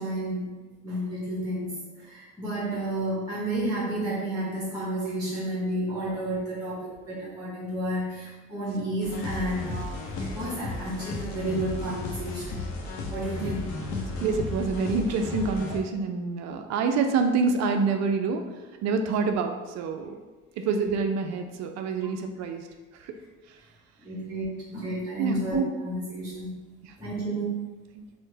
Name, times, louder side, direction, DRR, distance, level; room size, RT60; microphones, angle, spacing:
voice 1, 0.0-12.7 13.1-13.7 24.0-26.6 27.0-27.6, right 1 dB, 10° right, -7 dB, 1.0 m, -31 dB
sound 1, 9.0-15.8, left 3 dB, 50° left, 0.7 m, -34 dB
voice 2, 13.9-18.5 18.8-20.2 20.6-22.7 22.9-23.1 25.2-25.4 26.8-26.9 28.0-28.1, right 4 dB, 45° right, 6 dB, 0.4 m, -27 dB
4.4 x 2.2 x 2.7 m, 1.2 s
hypercardioid pair, 60°, 37 cm